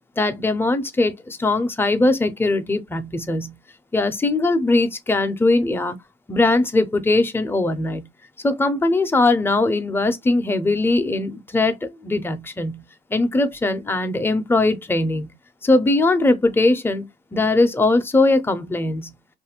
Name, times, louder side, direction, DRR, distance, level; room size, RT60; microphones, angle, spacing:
voice 1, 0.2-3.5 3.9-6.0 6.3-8.0 8.4-12.8 13.1-15.3 15.6-17.0 17.3-19.1, left 2 dB, 10° left, 0.5 m, -20 dB
2.6 x 2.4 x 2.9 m
cardioid pair, 90°, 20 cm